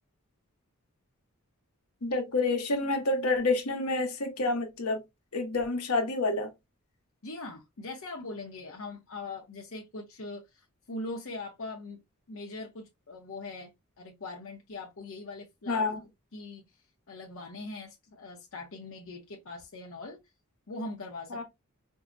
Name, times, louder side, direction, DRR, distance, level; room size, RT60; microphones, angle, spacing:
voice 1, 2.0-5.0 5.3-6.5 15.7-16.0 21.3-21.4, left 3 dB, 85° left, 1.0 m, -28 dB
voice 2, 7.2-12.0 12.3-16.7 17.1-20.2 20.7-21.4, left 2 dB, 65° left, 0.7 m, -41 dB
4.5 x 2.1 x 2.5 m
head